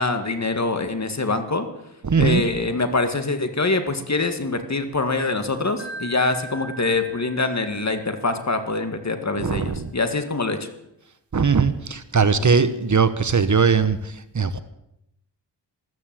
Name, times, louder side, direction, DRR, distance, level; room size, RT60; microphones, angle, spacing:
voice 1, 0.0-1.7 2.2-10.7 12.4-12.6, left 3 dB, 35° left, 8 dB, 2.0 m, -24 dB
voice 2, 2.0-2.4 9.3-9.9 11.3-14.6, right 5 dB, 40° right, 12 dB, 1.1 m, -20 dB
Wind chime, 5.8-8.9, right 2 dB, 70° left, 6.5 m, -40 dB
14.0 x 13.5 x 7.7 m, 0.83 s
wide cardioid pair, 80°, 44 cm